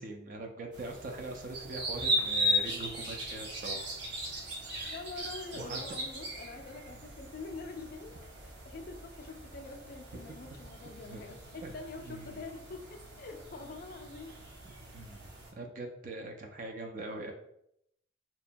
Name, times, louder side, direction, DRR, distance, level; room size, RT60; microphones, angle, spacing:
voice 1, 0.0-3.9 5.5-5.8 11.1-11.2 11.6-11.7 12.0-12.4 14.6-17.3, right 2 dB, 45° right, 3 dB, 0.3 m, -42 dB
sound 1, 0.7-15.5, equal, 60° right, 0.7 m, -38 dB
voice 2, 4.8-8.1 8.4-14.4 14.9-15.0, left 3 dB, 50° left, 5 dB, 0.3 m, -45 dB
2.8 x 2.1 x 2.5 m, 0.76 s
head